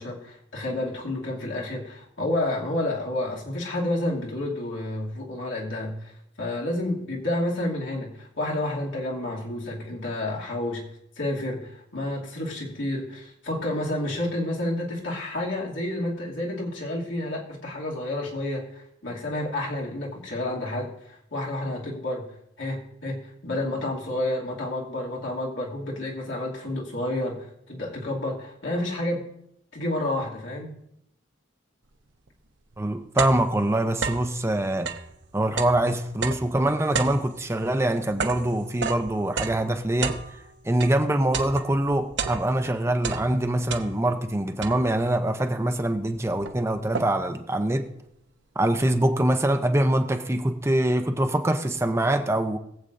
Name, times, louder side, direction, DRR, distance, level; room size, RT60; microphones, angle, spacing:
voice 1, 0.0-6.1 6.4-10.8 11.2-22.3 22.6-29.2 29.7-30.8, left 1 dB, 85° left, 2.4 m, -30 dB
sound 1, 32.3-32.4 32.7-34.4 34.7-41.0 41.3-42.7 43.0-44.2 44.6-45.1 45.8-45.9 46.1-47.4, right 5 dB, 70° right, 0.8 m, -32 dB
voice 2, 32.8-34.9 35.3-40.2 40.6-47.9 48.6-52.6, right 1 dB, 15° right, 0.6 m, -24 dB
21.5 x 8.0 x 2.6 m
head